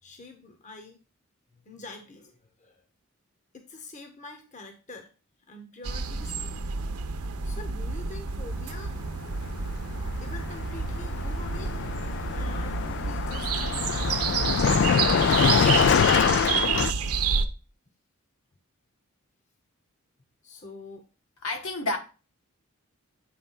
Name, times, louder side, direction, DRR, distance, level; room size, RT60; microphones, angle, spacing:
voice 1, 0.0-1.0 1.6-2.8 3.5-5.1 5.5-6.5 7.4-11.7 12.3-14.6 20.4-21.1, left 3 dB, 35° left, 1.0 m, -45 dB
sound 1, 5.8-17.4, right 5 dB, 85° right, 0.8 m, -29 dB
Car passing by, 9.4-9.7 9.9-16.9, left 7 dB, 55° left, 0.3 m, -25 dB
voice 2, 21.4-22.0, left 2 dB, 70° left, 1.5 m, -29 dB
8.6 x 3.5 x 5.5 m
head